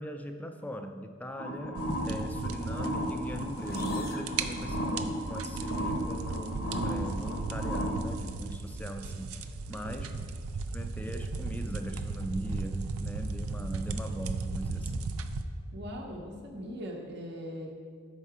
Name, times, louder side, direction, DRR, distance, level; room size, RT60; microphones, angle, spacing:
voice 1, 0.0-10.2 10.7-15.1, equal, 5° left, 5 dB, 0.3 m, -40 dB
sound 1, 1.4-8.0, equal, 80° left, 0.9 m, -34 dB
sound 2, 1.8-15.4, right 3 dB, 85° right, 0.4 m, -36 dB
sound 3, 3.5-5.3, left 5 dB, 45° left, 0.6 m, -51 dB
voice 2, 15.7-17.7, equal, 50° right, -1 dB, 0.7 m, -40 dB
6.5 x 5.5 x 4.7 m, 2.1 s
head